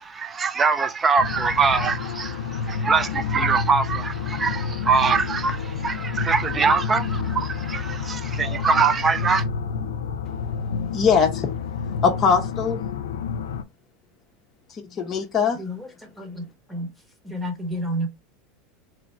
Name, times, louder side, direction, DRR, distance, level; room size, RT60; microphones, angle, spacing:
voice 1, 0.0-9.5, right 5 dB, 25° right, 0.5 m, -23 dB
sound 1, 1.2-13.6, left 6 dB, 90° left, 0.4 m, -29 dB
voice 2, 10.9-11.5 12.0-12.8 14.7-15.6, left 6 dB, 35° left, 0.7 m, -21 dB
voice 3, 17.2-18.1, equal, ahead, 1.2 m, -29 dB
3.1 x 2.4 x 4.3 m
supercardioid pair, 105°, 0 cm